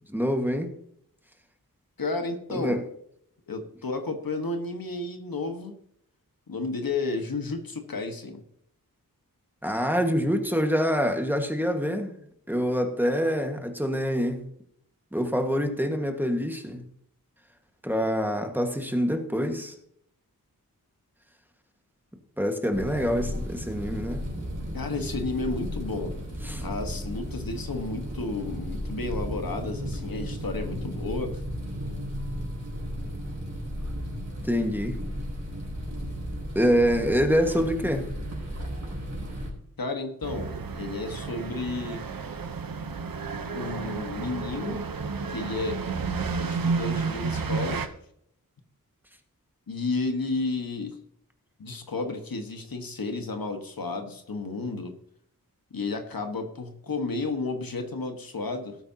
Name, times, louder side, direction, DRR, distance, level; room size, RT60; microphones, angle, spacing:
voice 1, 0.1-0.7 2.5-2.8 9.6-12.1 12.5-14.4 15.1-16.8 17.8-19.7 22.4-24.2 26.4-26.6 34.4-35.0 36.5-38.1, equal, 5° right, 4 dB, 1.6 m, -25 dB
voice 2, 2.0-2.8 3.5-5.8 6.5-8.4 24.7-26.1 26.6-31.4 39.8-42.0 43.5-44.8 45.3-45.8 46.4-47.9 49.7-51.0 51.6-55.0 55.7-58.8, left 3 dB, 75° left, 6 dB, 1.5 m, -32 dB
sound 1, 22.7-39.5, equal, 50° right, 4.7 m, -34 dB
sound 2, 40.2-47.9, right 4 dB, 75° right, 0.9 m, -31 dB
18.0 x 8.5 x 2.9 m, 0.69 s
wide cardioid pair, 75°, 35 cm